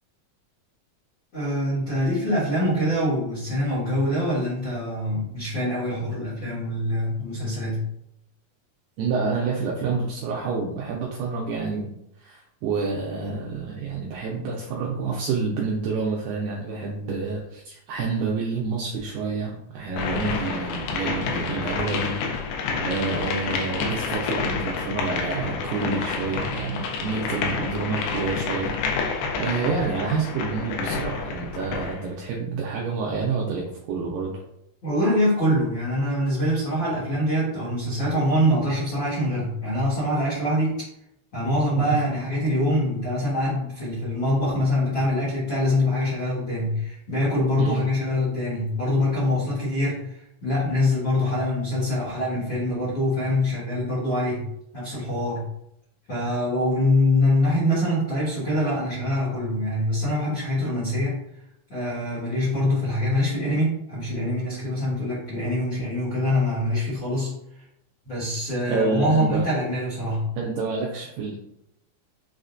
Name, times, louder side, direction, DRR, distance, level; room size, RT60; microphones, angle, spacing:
voice 1, 1.3-7.9 34.8-40.8 41.3-54.5 54.7-55.5 56.1-61.2 61.7-67.3 68.0-70.4, left 1 dB, 70° left, -11 dB, 1.1 m, -24 dB
voice 2, 9.0-11.9 12.2-22.2 22.8-28.8 29.4-34.3 47.6-47.8 68.7-69.4 70.4-71.3, right 4 dB, 85° right, -2 dB, 2.0 m, -28 dB
sound 1, 20.0-32.0, left 4 dB, 85° left, 2.6 m, -29 dB
6.1 x 2.1 x 2.5 m, 0.78 s
omnidirectional pair, 4.5 m